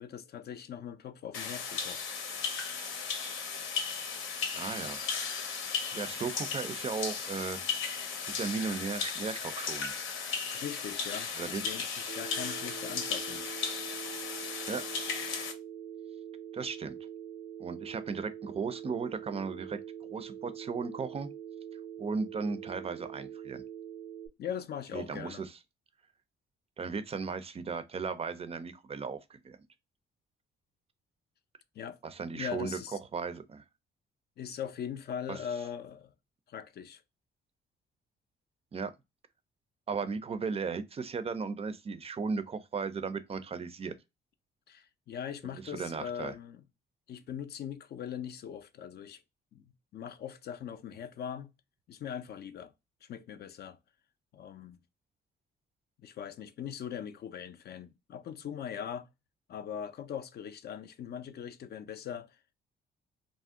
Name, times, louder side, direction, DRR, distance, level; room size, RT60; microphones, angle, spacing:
voice 1, 0.0-2.5 5.9-6.1 10.5-13.5 24.4-25.4 31.8-32.0 32.3-33.0 34.4-36.1 36.5-37.0 44.7-46.6 47.1-49.2 49.5-51.5 51.9-52.7 53.0-53.8 54.3-54.8 56.0-59.1 59.5-62.5, left 8 dB, 55° left, 0.4 m, -41 dB
sound 1, 1.3-15.5, left 5 dB, 85° left, 0.7 m, -36 dB
voice 2, 4.5-5.0 5.9-7.6 8.4-9.9 11.3-11.6 14.7-14.8 16.5-17.0 17.6-19.8 20.1-21.3 22.0-23.6 24.9-25.5 26.8-29.6 32.0-32.8 33.1-33.6 35.3-35.4 38.7-38.9 39.9-44.0 45.6-46.3, right 5 dB, 30° right, 0.4 m, -36 dB
Telephone, 12.1-24.3, right 9 dB, 75° right, 0.6 m, -44 dB
2.5 x 2.0 x 3.5 m
cardioid pair, 90°, 20 cm